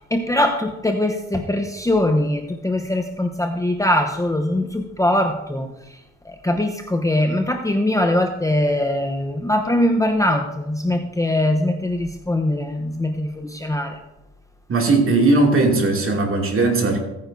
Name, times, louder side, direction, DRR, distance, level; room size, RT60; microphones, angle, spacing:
voice 1, 0.1-5.7 6.3-14.0, left 1 dB, 10° left, 4 dB, 0.8 m, -21 dB
voice 2, 14.7-17.0, right 3 dB, 45° right, 1 dB, 2.4 m, -18 dB
17.0 x 9.4 x 2.6 m, 0.94 s
cardioid pair, 90°, 30 cm